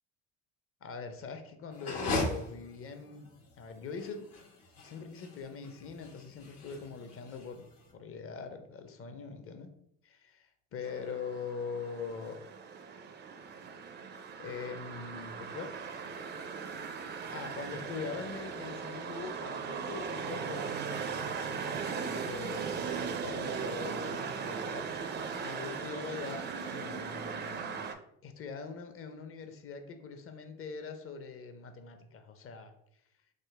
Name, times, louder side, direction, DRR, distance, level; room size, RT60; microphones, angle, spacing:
voice 1, 0.8-3.3 3.5-4.4 4.8-7.7 7.9-9.7 10.0-12.4 14.4-15.8 16.8-17.0 17.3-24.9 25.3-27.9 28.2-32.7, left 5 dB, 35° left, 7 dB, 0.6 m, -43 dB
sound 1, 1.7-7.8, left 2 dB, 70° left, 1.2 m, -38 dB
sound 2, 10.8-27.9, right 6 dB, 30° right, 0.4 m, -38 dB
3.8 x 2.1 x 3.2 m, 0.74 s
hypercardioid pair, 65°, 39 cm